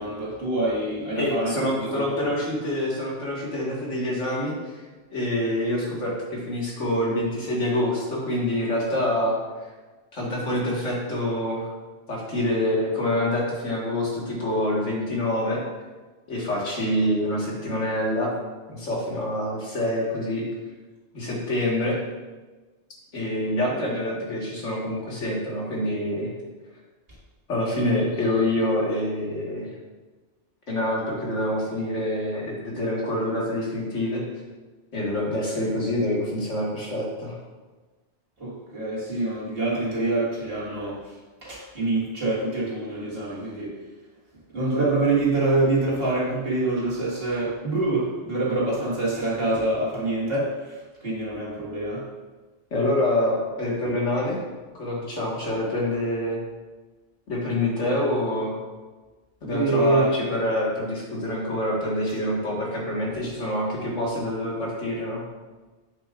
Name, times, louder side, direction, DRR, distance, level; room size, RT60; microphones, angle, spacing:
voice 1, 0.0-2.1 38.4-41.1 41.4-43.7 44.5-52.1 59.5-60.0, right 2 dB, 55° right, -6 dB, 2.0 m, -26 dB
voice 2, 1.2-4.7 5.1-9.4 10.1-11.7 12.1-15.6 16.3-18.3 18.7-20.4 21.1-22.0 23.1-26.3 27.5-29.7 30.7-34.2 34.9-37.4 52.7-54.4 54.8-56.4 57.3-58.6 59.4-65.2, left 1 dB, 80° left, -3 dB, 2.0 m, -26 dB
8.0 x 6.9 x 2.4 m, 1.3 s
omnidirectional pair, 1.2 m